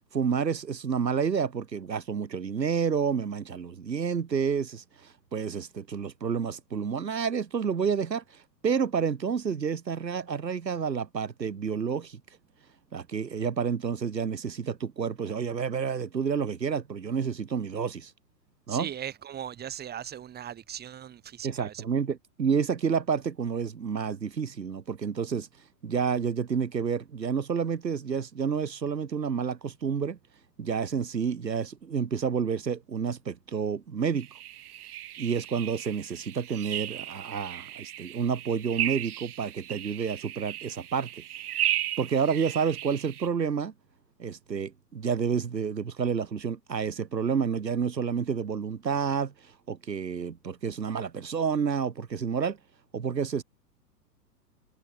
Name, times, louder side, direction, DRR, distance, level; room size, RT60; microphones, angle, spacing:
voice 1, 0.1-4.8 5.3-8.2 8.6-12.2 12.9-18.1 18.7-18.9 21.4-25.5 25.8-30.2 30.6-34.3 35.2-41.1 42.0-43.7 44.2-49.3 49.7-52.6 52.9-53.4, right 6 dB, 85° right, 3.3 m, -29 dB
voice 2, 18.7-21.8, right 10 dB, 20° right, 2.8 m, -39 dB
sound 1, 34.2-43.3, right 12 dB, 60° right, 1.9 m, -35 dB
hypercardioid pair, 120°, 49 cm